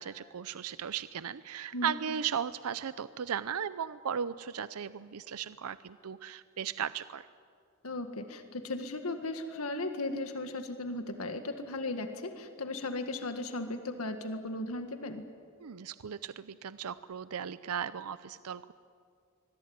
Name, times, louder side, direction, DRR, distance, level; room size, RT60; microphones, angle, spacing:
voice 1, 0.0-7.3 15.6-18.7, right 8 dB, 90° right, 15 dB, 0.6 m, -36 dB
voice 2, 7.8-15.3, left 2 dB, 80° left, 7 dB, 1.8 m, -36 dB
25.0 x 21.5 x 9.5 m, 2.3 s
head